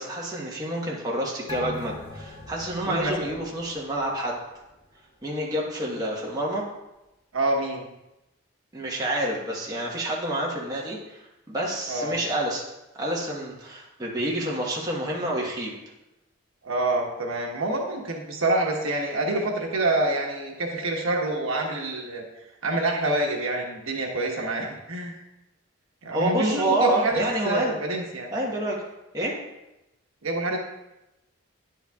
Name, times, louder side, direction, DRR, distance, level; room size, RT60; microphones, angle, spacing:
voice 1, 0.0-4.4 5.2-6.6 8.7-12.6 13.0-15.8 26.1-27.7 28.3-28.8 29.1-29.3, right 1 dB, 15° right, -4 dB, 1.2 m, -28 dB
sound 1, 1.5-4.4 4.7-4.8, left 2 dB, 25° left, 1.1 m, -40 dB
voice 2, 2.9-3.3 7.3-7.8 11.9-12.2 16.6-22.2 22.6-25.1 26.0-28.3 30.2-30.6, right 2 dB, 75° right, 1 dB, 1.2 m, -27 dB
10.0 x 7.7 x 2.4 m, 0.95 s
head